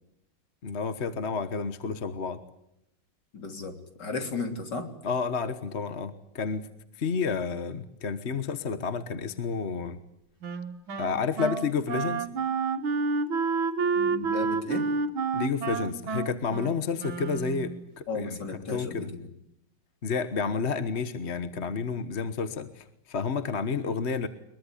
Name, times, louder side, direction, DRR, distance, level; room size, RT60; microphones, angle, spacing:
voice 1, 0.6-2.4 5.0-6.7 7.0-10.0 11.0-12.3 15.3-18.3 18.7-19.1 20.0-24.3, left 5 dB, 40° left, 11 dB, 1.3 m, -30 dB
voice 2, 3.3-4.9 14.0-14.9 18.1-19.1, left 3 dB, 55° left, 6 dB, 4.0 m, -34 dB
Wind instrument woodwind instrument, 10.4-17.8, right 4 dB, 75° right, 2.4 m, -29 dB
23.0 x 22.5 x 10.0 m, 0.79 s
omnidirectional pair, 2.2 m